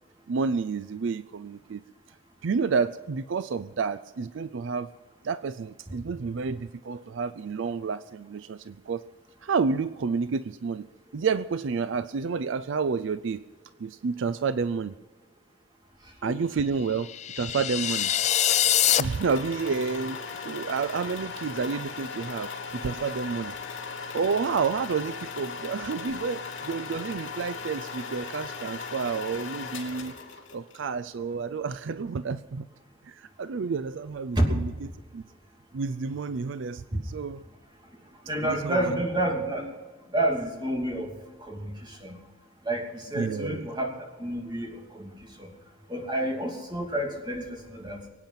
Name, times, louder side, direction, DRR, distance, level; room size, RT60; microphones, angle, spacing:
voice 1, 0.3-1.8 2.4-4.9 5.2-9.0 9.4-10.9 11.1-13.5 13.8-14.9 16.2-18.1 19.0-23.5 24.1-30.2 30.5-32.7 33.0-34.7 35.1-35.2 35.7-37.4 38.4-39.0 43.1-43.7, right 5 dB, 65° right, 13 dB, 0.4 m, -30 dB
sound 1, 17.0-19.0, left 11 dB, 35° left, 0.4 m, -24 dB
sound 2, 18.5-30.8, left 5 dB, 70° left, 2.9 m, -38 dB
voice 2, 38.2-39.7 40.1-41.1 41.4-42.2 42.6-45.5 45.9-48.0, right 1 dB, 20° right, 1 dB, 2.7 m, -29 dB
23.5 x 9.0 x 5.8 m, 1.3 s
head